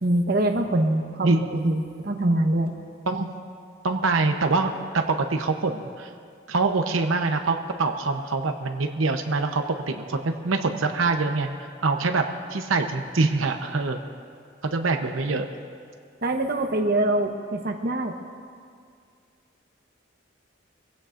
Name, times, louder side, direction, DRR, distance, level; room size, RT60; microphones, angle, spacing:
voice 1, 0.0-2.7 16.2-18.1, right 1 dB, 50° right, 4 dB, 1.1 m, -24 dB
voice 2, 3.8-6.1 6.5-11.5 11.8-12.2 12.5-14.0 14.6-15.5, right 3 dB, 90° right, 4 dB, 0.8 m, -24 dB
23.5 x 16.0 x 2.6 m, 2.2 s
head